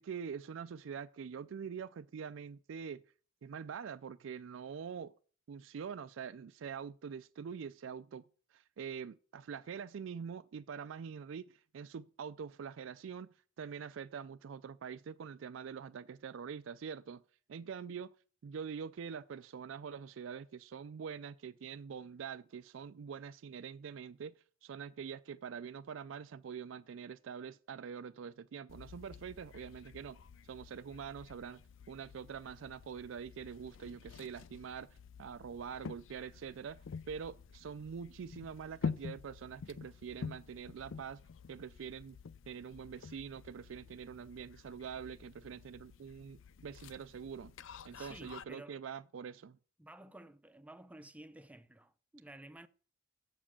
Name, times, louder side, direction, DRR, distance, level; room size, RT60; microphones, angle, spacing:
voice 1, 0.0-3.0 3.4-5.1 5.5-8.2 8.5-17.2 17.5-18.1 18.4-24.3 24.6-30.2 30.4-31.6 31.9-41.2 41.5-42.2 42.5-47.5 47.8-49.6, right 7 dB, 70° right, 0.4 m, -45 dB
sound 1, 28.7-48.4, left 5 dB, 70° left, 0.4 m, -48 dB
voice 2, 47.9-48.8 49.8-52.7, right 1 dB, 5° right, 0.5 m, -53 dB
7.6 x 7.3 x 7.3 m
head